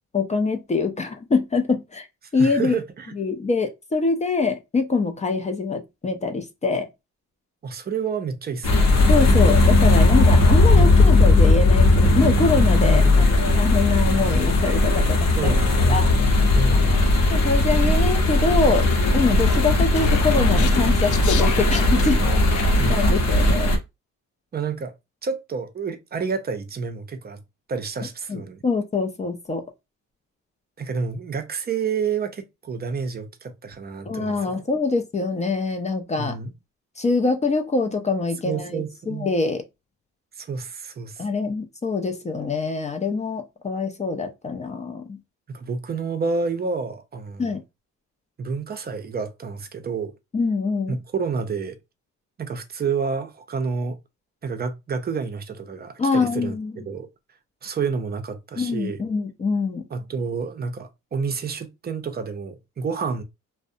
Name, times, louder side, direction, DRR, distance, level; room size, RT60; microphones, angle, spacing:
voice 1, 0.1-2.1 2.3-2.8 3.2-6.9 9.1-15.5 15.9-16.1 16.7-18.9 19.1-22.2 22.5-23.7 28.3-29.6 34.1-36.4 37.0-39.6 41.2-45.2 47.4-47.6 50.3-51.0 56.0-56.8 58.6-59.9, left 4 dB, 25° left, 0.4 m, -24 dB
voice 2, 2.4-3.1 7.6-8.9 10.6-10.9 12.8-13.4 15.4-16.1 16.5-17.1 22.8-23.1 24.5-24.9 25.2-27.4 27.7-28.6 30.8-34.6 36.2-36.5 38.4-39.3 40.4-41.2 45.5-47.6 48.4-50.1 50.9-51.8 52.4-54.0 54.4-57.1 57.6-59.0 59.9-63.2, right 5 dB, 35° right, 0.5 m, -29 dB
sound 1, 8.6-23.8, left 2 dB, 60° left, 0.8 m, -17 dB
Speech, 19.4-22.9, left 8 dB, 80° left, 0.5 m, -32 dB
2.5 x 2.0 x 2.5 m
cardioid pair, 90°, 30 cm